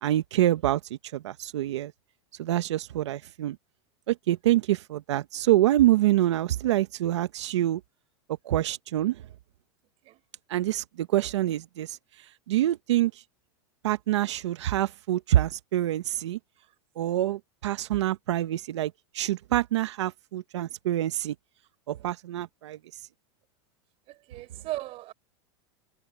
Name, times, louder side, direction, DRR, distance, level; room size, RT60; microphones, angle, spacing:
voice 1, 0.0-1.9 2.4-3.6 4.1-7.8 8.4-9.2 10.5-13.2 13.8-16.4 17.0-21.3 21.9-23.0, right 14 dB, 90° right, 1.0 m, -26 dB
voice 2, 24.1-25.1, right 17 dB, 45° right, 4.3 m, -37 dB
supercardioid pair, 135°, 14 cm